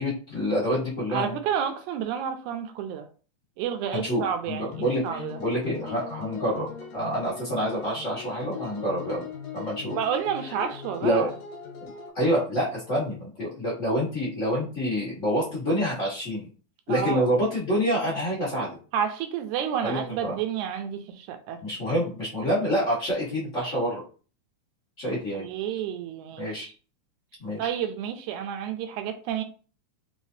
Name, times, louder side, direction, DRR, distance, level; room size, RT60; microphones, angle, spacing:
voice 1, 0.0-1.4 3.9-9.3 9.5-10.0 10.5-10.6 11.0-11.3 11.8-16.5 16.9-18.8 19.8-20.4 21.6-24.0 25.0-25.8 26.4-26.7 27.4-27.7, equal, 40° left, 1.1 m, -27 dB
voice 2, 1.1-3.1 3.6-4.7 5.0-5.4 9.9-11.3 16.9-17.3 18.9-21.6 25.4-26.7 27.6-29.4, right 8 dB, 85° right, 2.0 m, -30 dB
sound 1, 4.7-12.1, left 7 dB, 65° left, 2.1 m, -40 dB
4.8 x 3.3 x 2.7 m
omnidirectional pair, 3.4 m